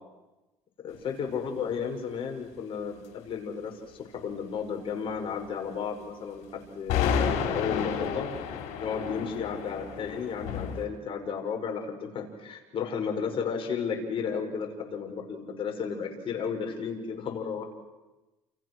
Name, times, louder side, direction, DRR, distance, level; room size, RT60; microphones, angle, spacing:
voice 1, 0.8-8.3 8.8-17.6, left 6 dB, 50° left, 2 dB, 6.2 m, -33 dB
sound 1, 6.9-10.8, left 7 dB, 85° left, 5.0 m, -30 dB
29.5 x 28.5 x 6.4 m, 1.1 s
cardioid pair, 105°, 12 cm